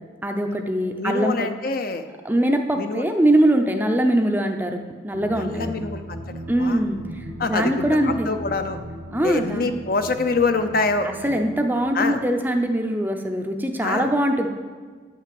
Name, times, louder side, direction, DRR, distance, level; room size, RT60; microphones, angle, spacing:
voice 1, 0.2-1.5 2.2-5.8 6.5-8.3 9.1-9.7 11.0-14.5, right 1 dB, 10° right, 5 dB, 0.5 m, -22 dB
voice 2, 0.9-2.1 2.7-3.0 5.4-6.0 6.6-6.8 7.4-8.8 9.2-11.1 11.9-12.2 13.8-14.1, left 3 dB, 50° left, 8 dB, 0.6 m, -25 dB
sound 1, 5.1-12.3, right 1 dB, 85° right, 1.3 m, -38 dB
9.5 x 5.6 x 7.7 m, 1.5 s
head